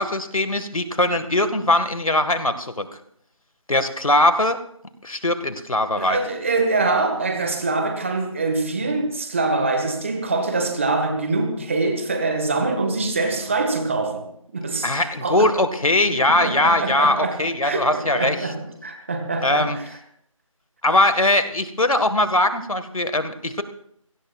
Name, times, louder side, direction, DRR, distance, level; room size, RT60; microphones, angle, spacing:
voice 1, 0.0-2.9 3.7-4.6 5.0-6.2 14.8-18.4 19.4-19.8 20.8-23.6, left 1 dB, 80° left, 1.7 m, -20 dB
voice 2, 6.0-14.3 14.5-15.5 16.1-20.0, right 3 dB, 20° right, 1.6 m, -24 dB
27.0 x 17.5 x 2.4 m
figure-of-eight pair, 165°, 18 cm